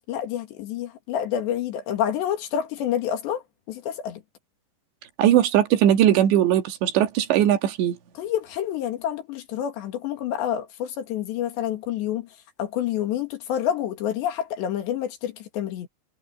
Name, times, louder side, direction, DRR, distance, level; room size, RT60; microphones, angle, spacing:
voice 1, 0.1-4.2 8.2-12.3 12.6-15.9, left 10 dB, 80° left, 4.4 m, -28 dB
voice 2, 5.2-8.0, right 11 dB, 90° right, 4.2 m, -19 dB
omnidirectional pair, 4.9 m